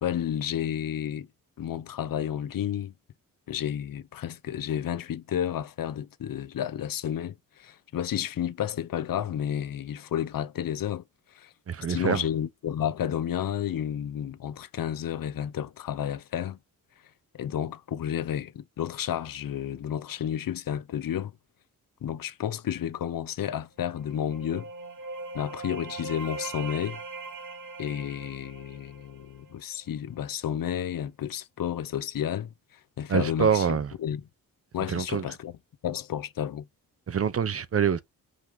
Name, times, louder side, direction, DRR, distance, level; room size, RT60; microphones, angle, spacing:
voice 1, 0.0-1.3 1.6-2.9 3.5-11.5 11.9-16.6 17.3-21.3 22.0-24.7 25.3-27.0 27.8-34.2 34.7-35.6 35.8-36.7, left 10 dB, 70° left, 0.9 m, -31 dB
voice 2, 11.7-12.2 33.1-33.9 34.9-35.2 37.1-38.0, right 7 dB, 40° right, 0.7 m, -25 dB
sound 1, 23.9-29.6, right 3 dB, 60° right, 2.5 m, -41 dB
5.8 x 5.5 x 6.7 m
wide cardioid pair, 140°, 35 cm